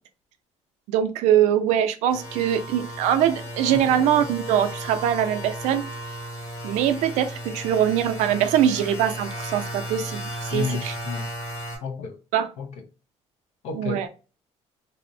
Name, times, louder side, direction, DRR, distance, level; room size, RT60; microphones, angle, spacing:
voice 1, 0.9-5.9 6.6-11.0 12.3-12.5 13.7-14.1, right 10 dB, 85° right, 0.4 m, -22 dB
sound 1, 2.1-11.8, equal, 20° left, 0.8 m, -35 dB
voice 2, 10.5-11.3 11.8-12.2 12.6-12.8 13.6-14.1, left 5 dB, 70° left, 0.5 m, -31 dB
2.6 x 2.0 x 2.5 m
cardioid pair, 165°, 12 cm